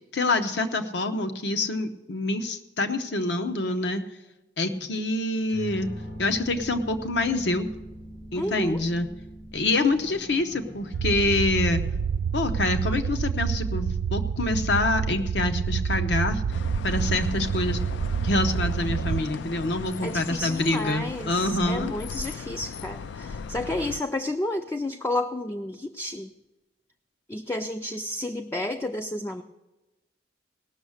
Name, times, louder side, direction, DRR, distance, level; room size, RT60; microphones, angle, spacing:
voice 1, 0.1-4.0 4.6-5.9 6.2-7.7 8.3-9.1 9.5-11.8 12.3-16.4 16.8-17.8 18.2-21.9, left 2 dB, 75° left, 7 dB, 0.8 m, -26 dB
sound 1, 5.3-20.5, equal, 55° left, 1.2 m, -44 dB
voice 2, 8.4-8.8 20.0-26.3 27.3-29.4, left 1 dB, 15° left, 6 dB, 0.3 m, -31 dB
sound 2, 10.9-19.2, right 7 dB, 80° right, 0.3 m, -28 dB
sound 3, 16.5-24.0, left 5 dB, 90° left, 0.4 m, -37 dB
18.0 x 6.4 x 6.4 m, 1.1 s
head